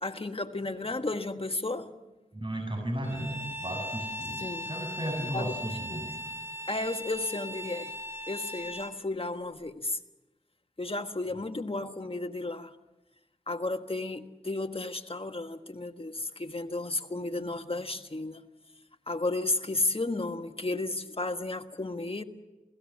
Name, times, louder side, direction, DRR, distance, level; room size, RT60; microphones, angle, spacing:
voice 1, 0.0-1.9 4.4-4.7 5.2-6.1 6.7-7.9 8.3-10.0 10.8-12.8 13.5-18.4 19.1-22.2, left 2 dB, 40° left, 1.6 m, -33 dB
voice 2, 2.3-6.1, right 1 dB, 35° right, 7.3 m, -35 dB
Bowed string instrument, 3.0-9.0, left 1 dB, 15° right, 2.8 m, -38 dB
27.5 x 18.5 x 7.5 m
cardioid pair, 40°, 14 cm